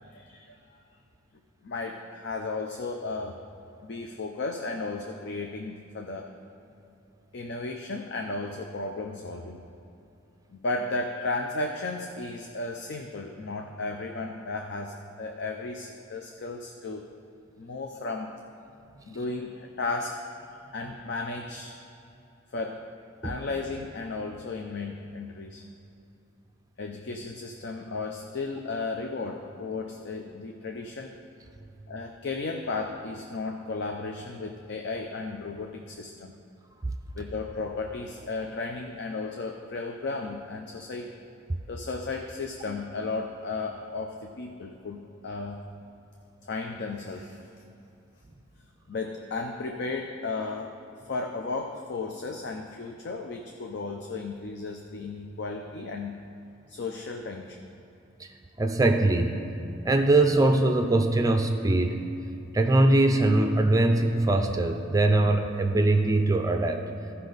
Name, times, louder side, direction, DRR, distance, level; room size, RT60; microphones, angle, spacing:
voice 1, 0.1-0.6 1.6-3.4 3.8-6.3 7.3-9.6 10.5-17.1 17.6-18.3 19.0-20.2 20.7-21.8 22.5-22.8 23.2-25.6 26.8-31.1 31.9-36.3 37.1-41.1 41.7-45.6 46.4-47.4 48.9-50.7 51.1-56.1 56.7-57.7, left 3 dB, 60° left, 3 dB, 0.5 m, -34 dB
voice 2, 58.6-59.4 59.8-62.0 62.5-66.8, right 2 dB, 20° right, 5 dB, 0.4 m, -22 dB
14.0 x 5.5 x 4.0 m, 2.8 s
head